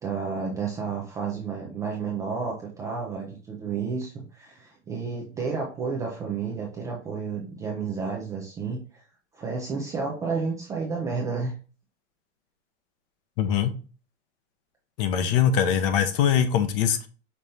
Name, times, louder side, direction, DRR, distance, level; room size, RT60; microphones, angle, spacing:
voice 1, 0.0-9.0 9.3-11.5, right 5 dB, 10° right, -2 dB, 0.3 m, -31 dB
voice 2, 13.4-13.7 15.0-17.1, left 8 dB, 50° left, 9 dB, 0.7 m, -22 dB
5.4 x 3.2 x 2.6 m, 0.37 s
hypercardioid pair, 135°, 37 cm